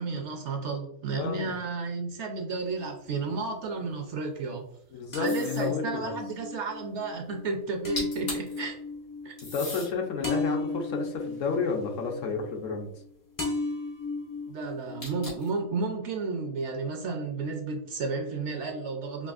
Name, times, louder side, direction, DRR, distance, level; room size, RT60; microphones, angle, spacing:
voice 1, 0.0-4.7 5.1-8.8 9.2-9.3 14.5-19.3, right 4 dB, 65° right, 3 dB, 0.8 m, -32 dB
voice 2, 1.1-1.5 4.9-6.1 9.5-12.9, left 5 dB, 70° left, 3 dB, 1.0 m, -31 dB
sound 1, 2.6-3.5 5.1-13.1 13.4-15.5, left 3 dB, 30° left, 0.4 m, -35 dB
sound 2, 5.2-5.7 7.7-7.8 8.0-8.6 9.4-9.9 10.6-12.1 15.0-15.6, left 2 dB, 85° left, 2.2 m, -39 dB
5.1 x 2.7 x 2.4 m, 0.69 s
omnidirectional pair, 1.5 m